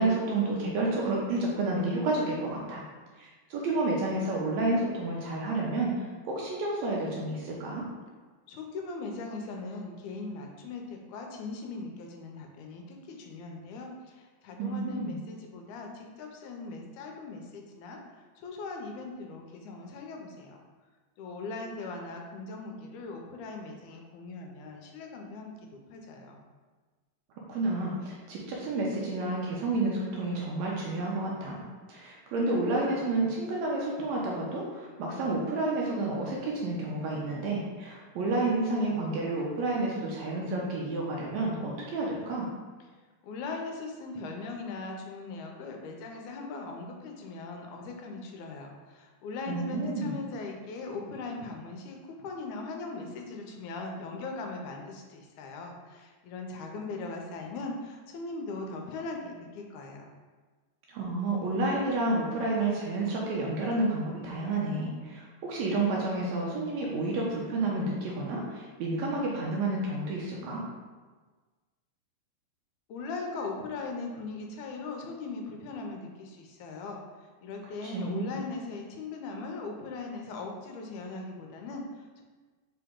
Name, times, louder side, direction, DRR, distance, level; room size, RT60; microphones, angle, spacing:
voice 1, 0.0-2.8 3.2-5.9 6.2-7.9 14.6-15.2 27.5-31.6 31.9-42.5 49.5-50.1 60.9-70.6 77.8-78.3, right 2 dB, 75° right, -3 dB, 1.8 m, -30 dB
voice 2, 8.5-20.6 21.2-26.4 43.2-60.1 72.9-82.2, left 3 dB, 80° left, 2 dB, 2.0 m, -39 dB
5.1 x 2.9 x 3.6 m, 1.4 s
omnidirectional pair, 3.5 m